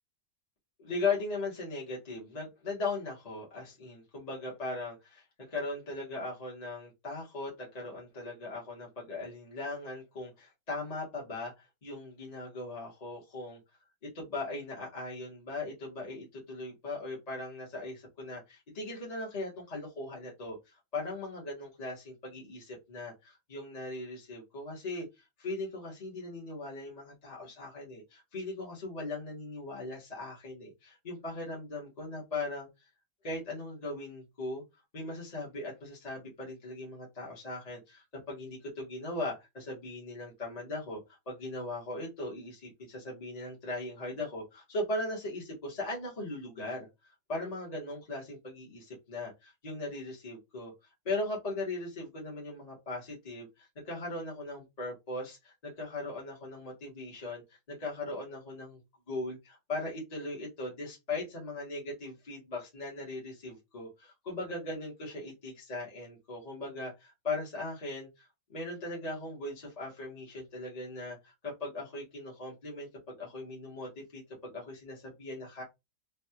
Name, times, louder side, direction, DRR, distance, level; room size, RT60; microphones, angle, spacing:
voice 1, 0.8-13.6 14.1-32.9 33.2-34.6 34.9-50.7 51.0-57.4 57.7-58.8 59.1-72.9 73.2-75.6, left 2 dB, 30° left, -4 dB, 0.8 m, -39 dB
3.4 x 2.3 x 2.8 m, 0.22 s
omnidirectional pair, 2.1 m